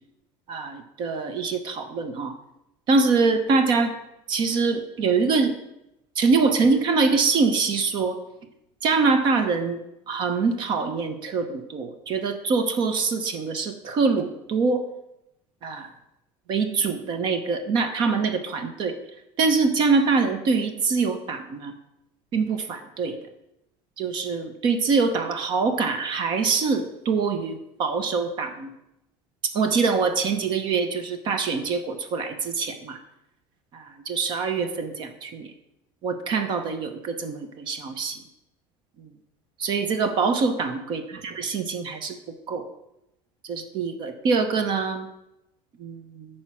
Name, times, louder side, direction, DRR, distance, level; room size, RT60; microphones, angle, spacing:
voice 1, 0.5-2.3 2.9-3.9 4.3-5.5 6.2-8.2 8.8-9.8 10.1-14.8 15.6-15.9 16.5-19.0 19.4-21.7 22.3-23.2 24.0-28.7 29.5-33.0 33.7-35.5 36.0-38.2 39.6-42.2 42.5-42.6 43.5-45.1 45.8-46.3, right 4 dB, 40° right, 8 dB, 0.8 m, -24 dB
10.0 x 4.4 x 6.1 m, 0.87 s
cardioid pair, 160°, 12 cm